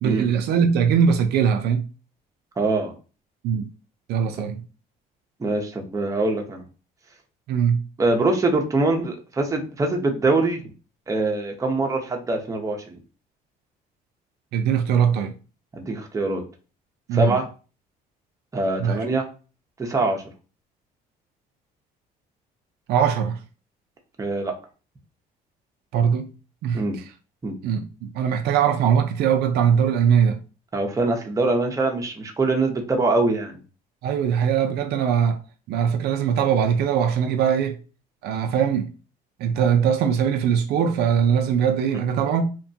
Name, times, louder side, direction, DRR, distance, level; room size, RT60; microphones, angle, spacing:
voice 1, 0.0-1.9 3.4-3.7 4.1-4.6 7.5-7.8 14.5-15.3 17.1-17.4 18.8-19.1 22.9-23.4 25.9-26.3 26.6-26.8 27.6-30.4 34.0-35.4 35.7-37.8 38.2-38.9 39.4-42.5, right 7 dB, 75° right, 0.4 m, -21 dB
voice 2, 2.6-2.9 5.4-6.6 8.0-10.6 11.1-13.0 15.7-16.4 17.1-17.5 18.5-19.3 19.8-20.2 24.2-24.5 26.7-27.0 27.4-27.5 30.7-33.6, right 2 dB, 20° right, 0.6 m, -23 dB
2.9 x 2.2 x 2.6 m
cardioid pair, 110°, 17 cm